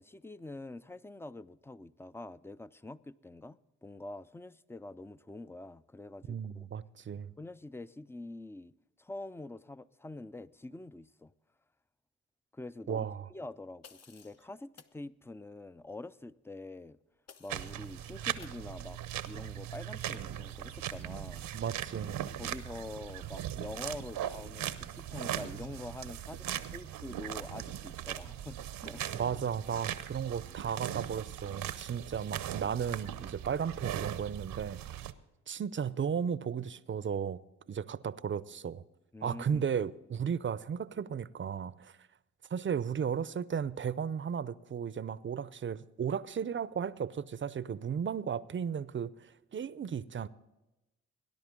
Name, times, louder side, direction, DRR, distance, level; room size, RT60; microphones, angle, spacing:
voice 1, 0.0-6.7 7.4-11.3 12.5-17.0 17.4-19.0 19.2-21.5 22.4-29.0 31.8-32.0 39.1-39.7, left 2 dB, 5° left, 0.4 m, -46 dB
voice 2, 6.3-7.3 12.9-13.3 21.5-22.2 29.1-35.0 35.5-37.4 37.7-38.8 39.2-41.9 42.5-50.3, right 7 dB, 35° right, 0.6 m, -35 dB
sound 1, 13.8-14.4 14.8-15.0 17.3-17.9 18.4-18.6, left 6 dB, 45° left, 0.9 m, -56 dB
sound 2, 17.5-35.1, right 11 dB, 70° right, 0.8 m, -39 dB
19.0 x 10.5 x 3.7 m
hypercardioid pair, 45°, 34 cm